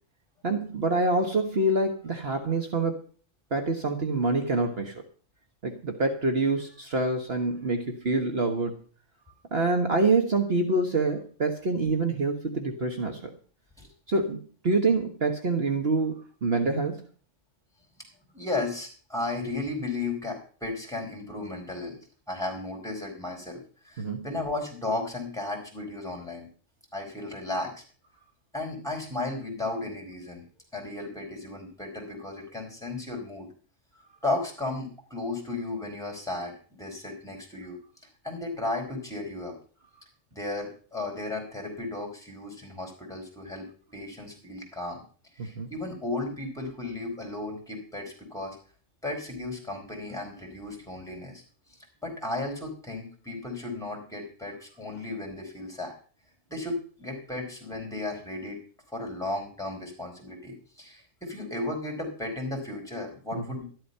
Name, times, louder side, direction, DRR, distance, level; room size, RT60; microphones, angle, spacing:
voice 1, 0.4-3.0 3.5-5.0 5.6-8.8 9.5-13.3 14.1-17.0 24.0-24.2 45.4-45.7 63.5-63.6, right 2 dB, 55° right, 4 dB, 1.6 m, -26 dB
voice 2, 18.3-22.0 22.3-26.5 26.9-27.8 28.5-30.4 30.7-33.5 34.2-37.8 38.2-39.5 40.3-43.7 43.9-45.0 45.4-48.6 49.0-51.4 52.0-56.0 56.5-58.6 58.9-63.7, left 2 dB, 5° left, 0 dB, 4.6 m, -34 dB
13.0 x 11.5 x 5.6 m, 0.42 s
omnidirectional pair, 1.3 m